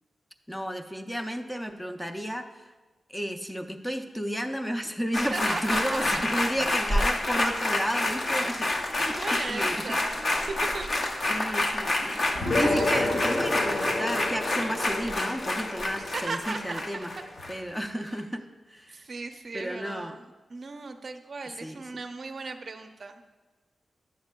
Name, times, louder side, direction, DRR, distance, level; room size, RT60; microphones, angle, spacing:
voice 1, 0.5-2.7 3.1-9.9 11.3-17.1 17.5-19.0 19.5-20.2 21.6-21.8, equal, 5° left, 6 dB, 0.4 m, -33 dB
sound 1, 5.1-17.9 18.2-18.3, left 1 dB, 55° left, 0.6 m, -28 dB
voice 2, 5.1-6.3 9.0-11.1 12.4-13.1 16.0-17.1 18.0-18.1 18.9-20.2 20.5-23.2, right 4 dB, 55° right, 6 dB, 0.5 m, -37 dB
sound 2, 12.3-17.2, left 2 dB, 75° left, 1.8 m, -30 dB
10.5 x 7.1 x 2.2 m, 1.2 s
wide cardioid pair, 100°, 0 cm